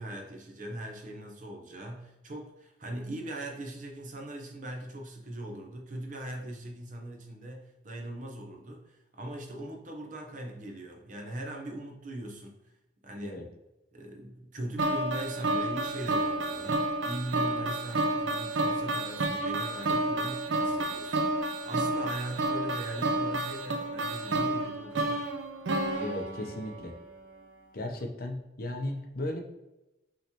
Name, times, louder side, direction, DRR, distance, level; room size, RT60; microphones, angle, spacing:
voice 1, 0.0-12.6 13.0-13.4 13.9-25.3, right 1 dB, 45° right, 2 dB, 0.8 m, -40 dB
sound 1, 14.8-27.0, right 2 dB, 90° right, 0.6 m, -30 dB
voice 2, 26.0-26.9 27.7-29.4, left 1 dB, 50° left, 3 dB, 0.7 m, -36 dB
5.6 x 3.2 x 2.9 m, 0.95 s
head